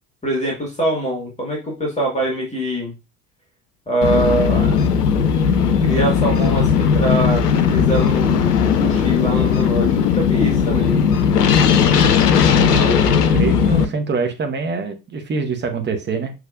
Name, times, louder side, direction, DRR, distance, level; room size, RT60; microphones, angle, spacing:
voice 1, 0.2-2.9 3.9-4.8 5.8-11.0, right 1 dB, 15° left, -2 dB, 1.8 m, -23 dB
sound 1, 4.0-13.8, left 7 dB, 75° left, 0.7 m, -17 dB
voice 2, 12.5-13.0 13.3-16.3, right 4 dB, 20° right, 6 dB, 0.9 m, -24 dB
6.3 x 3.2 x 2.5 m, 0.27 s
figure-of-eight pair, 65°, 48 cm